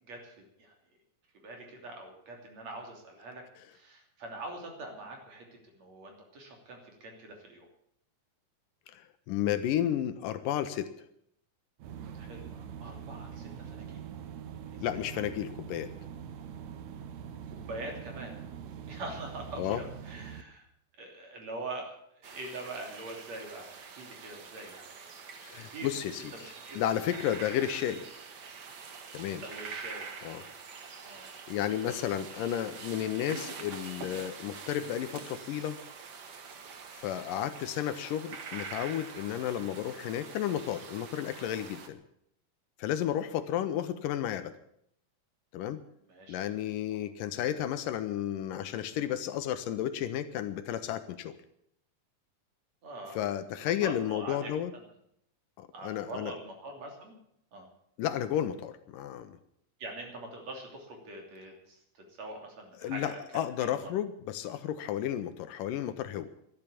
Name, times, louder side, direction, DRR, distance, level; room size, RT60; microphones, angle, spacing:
voice 1, 0.0-0.8 1.4-3.4 3.7-7.7 12.2-14.1 14.7-15.1 17.5-18.4 18.9-20.6 21.0-24.8 25.6-25.9 26.3-26.8 29.4-30.1 31.0-31.3 46.1-46.4 46.9-47.0 52.8-53.2 53.6-54.8 55.7-57.2 57.5-57.7 59.8-63.4 63.8-63.9, right 2 dB, 50° right, 2 dB, 4.0 m, -44 dB
voice 2, 8.9-10.9 14.8-15.9 19.6-19.8 25.4-28.0 29.1-29.4 30.2-30.4 31.5-35.8 36.9-42.0 42.8-44.5 45.5-45.8 46.3-51.3 53.1-54.7 55.6-56.3 58.0-59.4 62.8-66.3, left 11 dB, 75° left, 11 dB, 2.4 m, -32 dB
sound 1, 11.8-20.4, right 8 dB, 65° right, 2.0 m, -43 dB
sound 2, 22.2-41.9, right 5 dB, 85° right, 0.9 m, -45 dB
12.5 x 12.0 x 8.5 m, 0.72 s
omnidirectional pair, 4.1 m